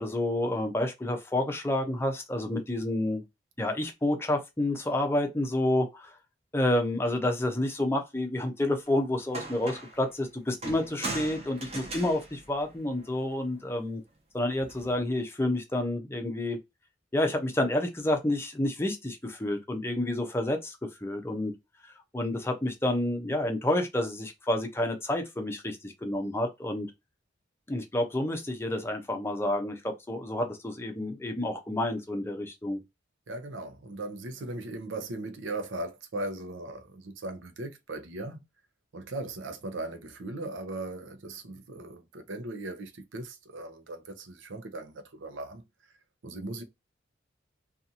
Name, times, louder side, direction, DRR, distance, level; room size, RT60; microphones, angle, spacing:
voice 1, 0.0-3.2 3.6-6.1 6.5-14.0 14.3-16.6 17.1-21.5 22.1-26.9 27.7-32.8, left 1 dB, 15° left, 0.6 m, -29 dB
sound 1, 8.9-9.0 9.3-10.0 10.6-13.3 14.6-15.0, right 2 dB, 35° right, 0.8 m, -39 dB
voice 2, 33.3-38.4 38.9-45.6 46.2-46.6, right 2 dB, 80° right, 0.6 m, -38 dB
2.6 x 2.4 x 2.7 m
head